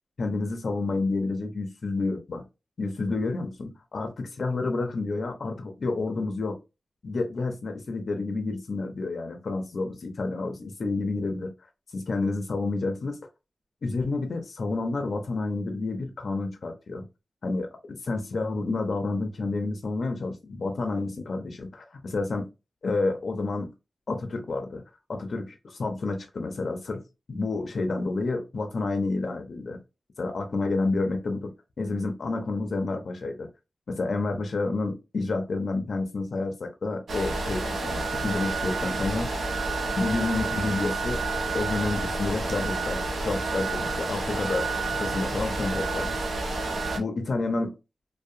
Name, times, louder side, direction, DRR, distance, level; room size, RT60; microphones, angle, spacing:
voice 1, 0.2-2.5 2.8-6.6 7.0-11.5 11.9-13.2 13.8-17.1 17.4-22.5 22.8-23.7 24.1-24.8 25.1-27.0 27.3-29.8 30.2-33.5 33.9-39.4 40.0-41.2 41.5-44.7 45.0-46.2 46.9-47.7, left 3 dB, 60° left, 0.4 m, -29 dB
sound 1, 37.1-47.0, right 3 dB, 85° right, 0.5 m, -29 dB
2.7 x 2.0 x 2.4 m
wide cardioid pair, 145°, 0 cm